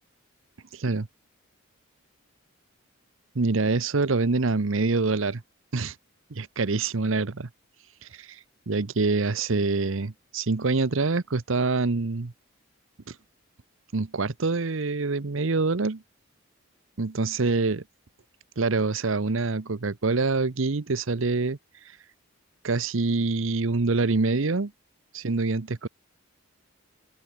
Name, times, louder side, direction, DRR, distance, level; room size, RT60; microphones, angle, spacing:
voice 1, 0.7-1.1 3.3-5.4 5.7-6.0 6.3-7.5 8.0-8.4 8.7-12.3 13.1-13.2 13.9-16.0 17.0-17.8 18.6-21.6 21.8-22.0 22.6-24.7 25.1-25.9, right 3 dB, 70° right, 0.9 m, -25 dB
open air
head